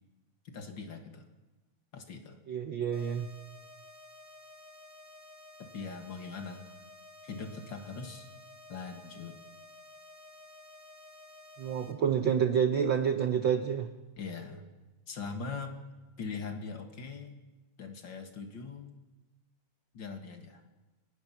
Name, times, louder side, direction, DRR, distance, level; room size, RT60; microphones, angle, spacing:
voice 1, 0.4-1.3 1.9-2.4 5.7-6.7 7.2-8.3 8.7-9.4 14.2-14.7 15.1-15.8 16.2-17.4 17.8-19.0 19.9-20.6, left 4 dB, 45° left, 4 dB, 2.3 m, -41 dB
voice 2, 2.5-3.3 11.6-13.9, right 7 dB, 75° right, 7 dB, 1.1 m, -28 dB
sound 1, 2.9-11.9, left 2 dB, 25° left, 0.4 m, -53 dB
29.0 x 18.5 x 5.9 m, 1.2 s
omnidirectional pair, 3.3 m